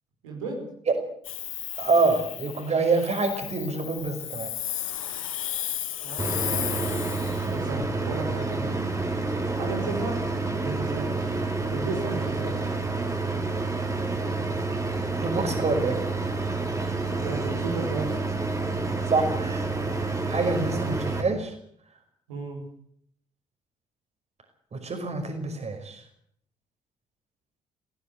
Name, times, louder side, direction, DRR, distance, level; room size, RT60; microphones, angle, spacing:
voice 1, 0.2-0.7 6.0-7.1 7.4-8.8 9.6-10.2 10.5-11.3 11.6-12.7 17.2-18.2 22.3-22.6, right 3 dB, 80° right, 0 dB, 5.3 m, -34 dB
Hiss, 1.2-7.5, left 12 dB, 85° left, 1.2 m, -34 dB
voice 2, 1.8-4.5 15.2-16.0 19.1-21.5 24.7-26.0, right 3 dB, 40° right, 6 dB, 5.3 m, -26 dB
sound 1, 6.2-21.2, right 3 dB, 20° right, 4.4 m, -29 dB
18.5 x 16.5 x 9.4 m, 0.65 s
hypercardioid pair, 45°, 17 cm